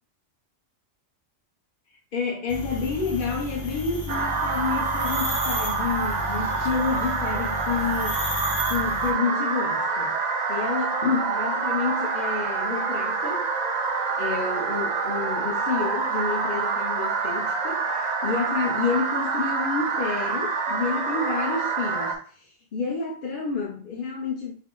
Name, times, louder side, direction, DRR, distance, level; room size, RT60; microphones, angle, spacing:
voice 1, 2.1-8.2 8.7-10.1 10.5-13.5 14.2-24.5, left 5 dB, 50° left, -3 dB, 0.9 m, -29 dB
sound 1, 2.5-9.1, left 2 dB, 90° left, 1.5 m, -33 dB
sound 2, 4.1-22.2, right 4 dB, 50° right, 0.5 m, -27 dB
5.4 x 2.0 x 3.8 m, 0.43 s
omnidirectional pair, 1.2 m